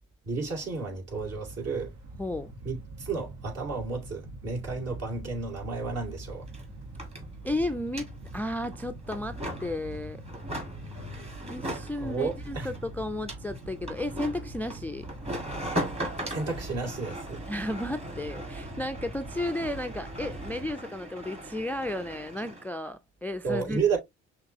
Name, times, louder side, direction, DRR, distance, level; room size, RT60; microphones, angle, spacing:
voice 1, 0.2-1.9 2.6-6.5 12.0-12.7 16.3-17.4 23.4-24.0, right 4 dB, 55° right, 2.2 m, -32 dB
sound 1, 1.1-20.7, right 2 dB, 80° right, 1.2 m, -43 dB
voice 2, 2.2-2.5 7.4-10.2 11.5-15.1 17.5-24.0, left 1 dB, 5° left, 0.3 m, -33 dB
sound 2, 5.8-5.9 6.1-22.7, equal, 20° right, 1.5 m, -39 dB
5.9 x 2.3 x 2.7 m
cardioid pair, 90°, 30 cm